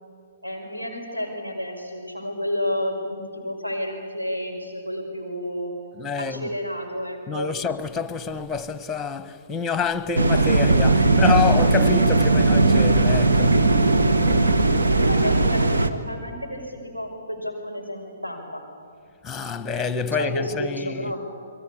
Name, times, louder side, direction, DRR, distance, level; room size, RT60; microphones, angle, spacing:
voice 1, 0.4-5.7 6.2-7.5 11.0-11.2 14.9-18.6 20.1-21.2, equal, 85° right, 5.5 m, -31 dB
voice 2, 6.0-6.5 7.3-13.8 19.2-21.1, left 5 dB, 10° left, 1.2 m, -27 dB
sound 1, 10.2-15.9, right 2 dB, 70° right, 1.7 m, -18 dB
28.0 x 22.5 x 8.6 m
figure-of-eight pair, 125°, 0 cm